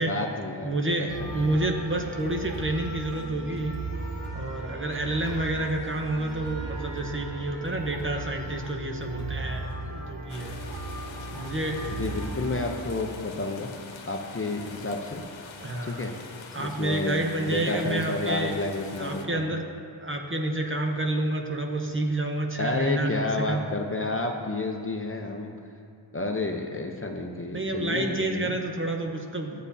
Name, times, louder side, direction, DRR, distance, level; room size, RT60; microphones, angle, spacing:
voice 1, 0.0-1.5 11.9-13.7 14.1-15.2 15.8-16.1 16.6-19.5 22.6-25.5 26.1-28.5, left 2 dB, 30° left, 2 dB, 0.7 m, -30 dB
voice 2, 0.6-3.8 4.3-10.6 11.3-12.0 15.6-16.0 16.5-18.6 19.0-19.6 20.0-23.6 27.5-29.6, right 1 dB, 25° right, 2 dB, 0.8 m, -29 dB
sound 1, 1.1-12.6, right 2 dB, 65° right, 2.5 m, -36 dB
sound 2, 10.3-19.3, left 4 dB, 75° left, 1.0 m, -45 dB
14.0 x 8.4 x 2.7 m, 2.4 s
wide cardioid pair, 130°, 47 cm